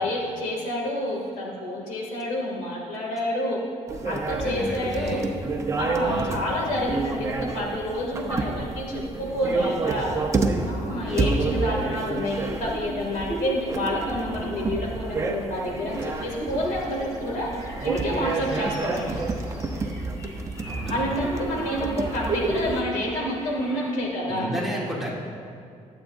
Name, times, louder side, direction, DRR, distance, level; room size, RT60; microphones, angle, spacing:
voice 1, 0.0-3.6 4.0-5.2 5.8-10.2 10.7-17.5 17.8-19.1 20.9-24.5, left 1 dB, 80° left, -2 dB, 2.5 m, -28 dB
sound 1, 3.9-22.8, right 3 dB, 20° right, 0.7 m, -29 dB
voice 2, 4.3-5.3 6.0-6.4 10.9-11.3 18.4-18.7 20.6-21.1 24.3-25.1, right 1 dB, ahead, -5 dB, 1.7 m, -33 dB
sound 2, 15.9-23.9, equal, 25° left, 1.5 m, -44 dB
21.5 x 8.2 x 2.7 m, 2.4 s
cardioid pair, 155°, 13 cm